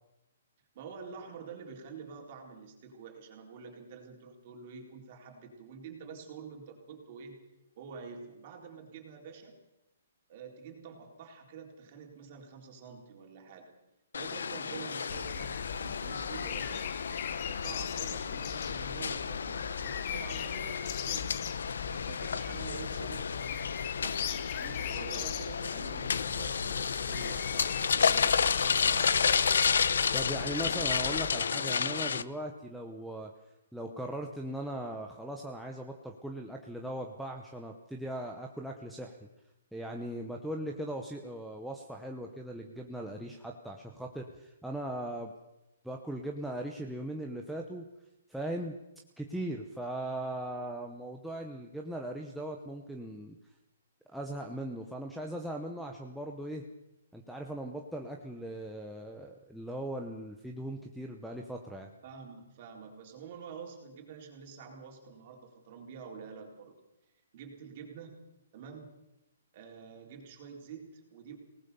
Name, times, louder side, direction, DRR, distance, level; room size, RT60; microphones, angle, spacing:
voice 1, 0.7-7.4 7.8-9.6 10.3-13.7 14.1-16.9 17.4-21.3 22.1-23.6 24.0-29.4 62.0-66.7 67.3-68.2 68.5-68.9 69.5-71.4, right 5 dB, 30° right, 2 dB, 4.2 m, -47 dB
sound 1, 14.1-32.2, left 6 dB, 75° left, 0.9 m, -31 dB
sound 2, 15.1-31.3, left 9 dB, 25° left, 1.0 m, -40 dB
voice 2, 30.1-33.3 33.7-39.2 39.7-45.3 45.8-47.9 48.3-48.7 49.2-53.4 54.1-56.6 57.1-61.9, right 1 dB, ahead, 0 dB, 0.9 m, -39 dB
24.0 x 19.0 x 6.9 m, 0.94 s
hypercardioid pair, 175°, 0 cm